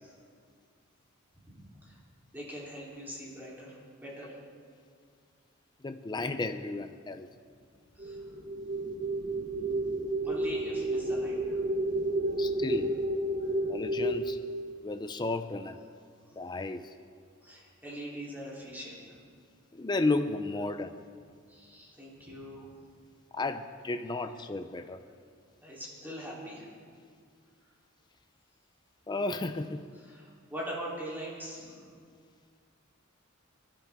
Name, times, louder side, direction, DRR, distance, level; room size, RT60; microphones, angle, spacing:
voice 1, 1.5-2.0 2.3-4.4 8.0-8.2 10.2-11.6 13.4-13.5 17.4-19.2 21.5-22.7 25.6-26.7 30.0-31.8, equal, 10° right, -6 dB, 3.5 m, -42 dB
voice 2, 5.8-7.3 12.4-13.0 13.7-14.4 14.8-15.8 16.4-16.9 19.7-21.0 23.3-25.0 29.1-29.9, left 2 dB, 20° left, 8 dB, 0.5 m, -33 dB
sound 1, 8.0-14.2, right 1 dB, 40° right, 1.1 m, -31 dB
25.5 x 11.5 x 3.7 m, 2.1 s
head